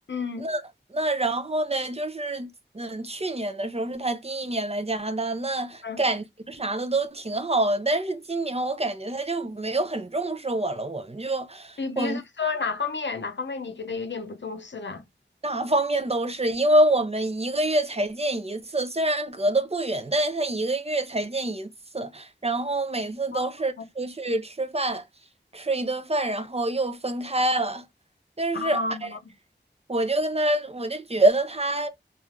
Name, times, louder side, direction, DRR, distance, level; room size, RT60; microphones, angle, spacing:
voice 1, 0.1-0.4 5.8-6.0 11.8-15.0 23.3-23.5 23.8-23.9 28.5-29.3, left 4 dB, 70° left, 0.5 m, -31 dB
voice 2, 0.9-2.5 2.7-12.2 15.4-21.7 21.9-25.0 25.5-27.8 28.4-28.8 29.9-31.9, right 1 dB, 35° right, 0.5 m, -26 dB
3.2 x 2.3 x 2.4 m
wide cardioid pair, 45°, 19 cm